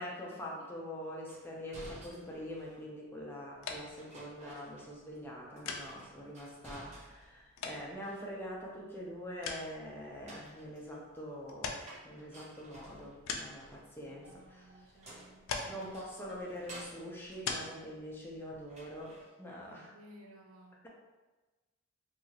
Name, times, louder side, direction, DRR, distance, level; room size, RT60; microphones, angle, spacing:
voice 1, 0.0-15.0 15.7-19.9, equal, 10° left, -3 dB, 0.5 m, -44 dB
sound 1, 1.3-2.9 4.0-5.3 5.5-7.4 7.8-8.6 10.0-18.3 18.7-19.3, right 1 dB, 35° right, 0.7 m, -54 dB
sound 2, 3.5-19.2, left 5 dB, 70° left, 0.3 m, -46 dB
voice 2, 14.1-16.0 19.6-20.8, right 1 dB, 70° right, 1 dB, 0.4 m, -58 dB
2.8 x 2.3 x 2.7 m, 1.2 s
head